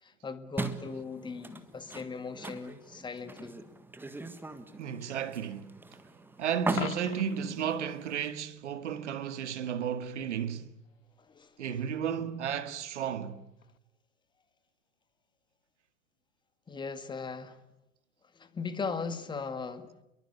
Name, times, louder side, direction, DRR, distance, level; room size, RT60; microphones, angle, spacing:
voice 1, 0.0-3.5 11.2-11.9 16.7-17.6 18.3-20.0, left 5 dB, 10° left, 1.9 m, -39 dB
sound 1, 0.6-8.3, right 2 dB, 5° right, 1.6 m, -40 dB
voice 2, 4.8-5.7 6.4-10.7 11.6-13.4, right 8 dB, 60° right, 2.1 m, -33 dB
Coin (dropping), 6.7-7.5 13.6-13.8, left 9 dB, 75° left, 0.9 m, -39 dB
29.5 x 23.0 x 8.3 m
figure-of-eight pair, 105°, 40 cm